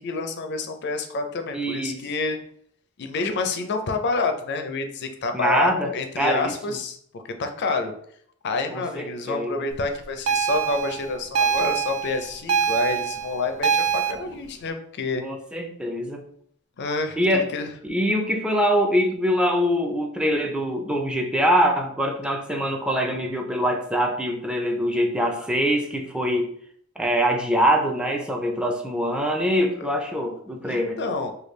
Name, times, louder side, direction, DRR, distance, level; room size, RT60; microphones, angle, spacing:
voice 1, 0.0-2.4 3.0-7.9 8.4-15.2 16.8-17.2 17.5-17.7 29.8-29.9 30.6-31.3, left 3 dB, 55° left, 6 dB, 0.4 m, -28 dB
voice 2, 1.5-2.0 5.3-6.8 8.7-9.6 15.2-16.2 17.2-17.5 17.8-26.5 27.0-31.0, equal, 5° right, 2 dB, 0.4 m, -24 dB
sound 1, 10.3-14.1, right 7 dB, 75° right, 0.4 m, -24 dB
3.3 x 2.3 x 3.1 m, 0.64 s
head